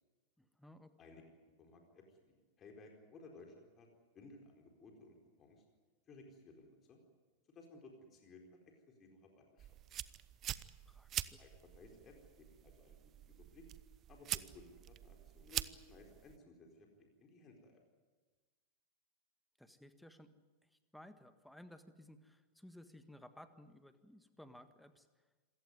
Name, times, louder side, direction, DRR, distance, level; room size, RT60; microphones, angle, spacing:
voice 1, 0.4-0.9 10.9-11.4 19.6-20.3 20.7-25.1, left 1 dB, ahead, 10 dB, 1.7 m, -58 dB
voice 2, 1.6-3.9 4.1-5.6 6.1-7.0 7.5-8.6 8.9-9.8 11.4-13.0 13.3-13.6 14.1-17.8, left 3 dB, 25° left, 2 dB, 4.4 m, -59 dB
sound 1, 9.6-16.4, right 12 dB, 30° right, 0.8 m, -45 dB
26.5 x 16.5 x 9.6 m, 1.3 s
figure-of-eight pair, 90°, 0 cm